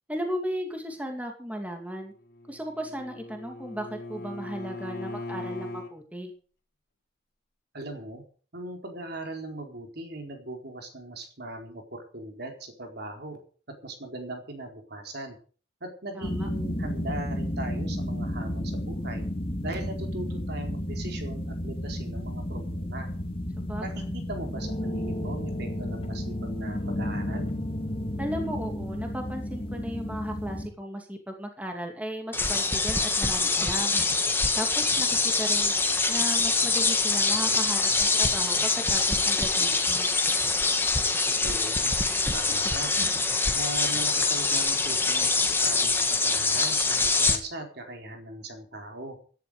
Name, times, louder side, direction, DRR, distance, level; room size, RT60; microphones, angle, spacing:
voice 1, 0.1-2.1 2.5-6.3 16.2-16.5 23.6-24.2 28.2-33.9 34.6-35.7 36.1-40.1, equal, 10° right, 3 dB, 2.5 m, -36 dB
Bowed string instrument, 2.1-5.9, left 2 dB, 55° left, 2.4 m, -39 dB
voice 2, 7.7-8.2 8.5-13.4 13.8-15.4 15.8-19.3 19.6-23.1 23.8-27.5 41.4-41.9 42.3-42.9 43.5-49.2, right 2 dB, 60° right, 3 dB, 4.2 m, -39 dB
sound 1, 16.2-30.7, left 1 dB, 30° left, 2.3 m, -32 dB
sound 2, 32.3-47.4, left 3 dB, 10° left, 1.9 m, -24 dB
16.5 x 11.5 x 5.1 m, 0.41 s
head